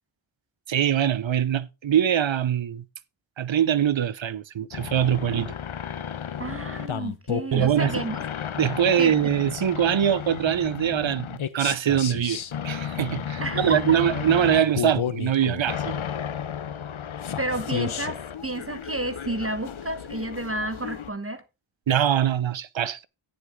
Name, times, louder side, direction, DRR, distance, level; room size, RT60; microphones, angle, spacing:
voice 1, 0.7-2.8 3.4-5.5 7.5-8.0 8.6-16.0 21.9-23.0, right 9 dB, 65° right, 0.8 m, -23 dB
sound 1, 4.7-21.1, left 8 dB, 75° left, 1.0 m, -33 dB
voice 2, 6.4-8.2 9.0-9.1 13.4-14.0 17.4-21.4, right 2 dB, 25° right, 1.2 m, -31 dB
11.5 x 9.7 x 3.6 m
cardioid pair, 40°, 48 cm